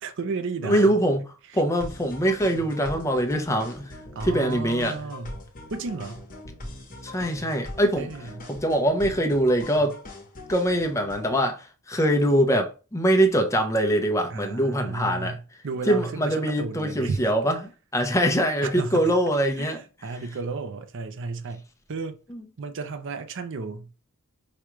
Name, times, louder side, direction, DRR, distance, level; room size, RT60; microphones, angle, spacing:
voice 1, 0.0-0.9 4.1-5.4 5.7-6.2 8.0-8.5 14.3-17.3 18.6-19.1 19.6-21.6 21.9-22.2 22.6-23.9, right 4 dB, 60° right, 0.5 m, -33 dB
voice 2, 0.6-1.3 1.5-4.0 4.2-5.0 7.0-8.1 8.5-10.0 10.5-15.4 15.9-17.6 17.9-19.8 22.3-22.4, right 1 dB, 15° left, 0.6 m, -23 dB
sound 1, 1.8-11.4, left 1 dB, 40° left, 1.0 m, -41 dB
4.9 x 2.3 x 3.0 m
head